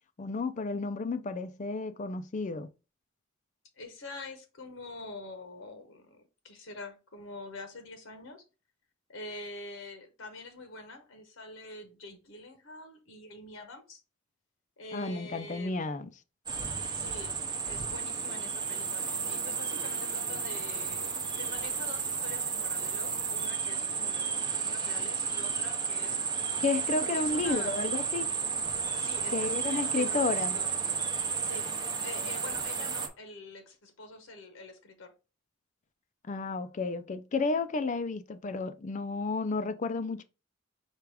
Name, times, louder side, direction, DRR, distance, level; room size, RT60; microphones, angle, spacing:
voice 1, 0.2-2.7 14.9-16.1 26.6-28.3 29.3-30.6 36.3-40.2, left 3 dB, 35° left, 0.4 m, -32 dB
voice 2, 3.8-8.4 9.1-14.0 14.8-15.8 16.9-17.3 17.6-26.2 27.0-27.8 28.9-30.7 31.4-31.7 32.0-35.1, left 2 dB, 70° left, 0.9 m, -45 dB
sound 1, 16.5-33.1, right 6 dB, 20° right, 0.7 m, -32 dB
4.6 x 2.4 x 4.7 m
head